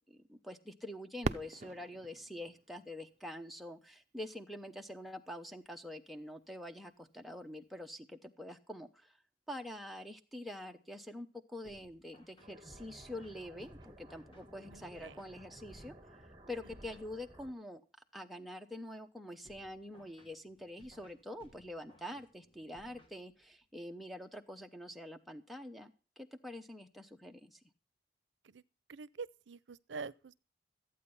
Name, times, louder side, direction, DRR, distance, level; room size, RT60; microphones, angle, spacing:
voice 1, 0.1-9.2 9.5-17.8 18.1-25.9 26.2-27.6, left 1 dB, ahead, 0.8 m, -46 dB
Fireworks, 1.2-4.0 4.7-4.8 5.5-5.9 7.8-7.9, right 3 dB, 40° right, 0.5 m, -42 dB
sound 1, 11.6-15.8 19.4-23.7, equal, 30° left, 1.7 m, -64 dB
sound 2, 12.4-17.5, equal, 25° right, 1.6 m, -55 dB
voice 2, 14.7-15.2 28.4-28.6 28.9-30.5, right 5 dB, 90° right, 0.5 m, -46 dB
14.0 x 8.8 x 5.4 m
head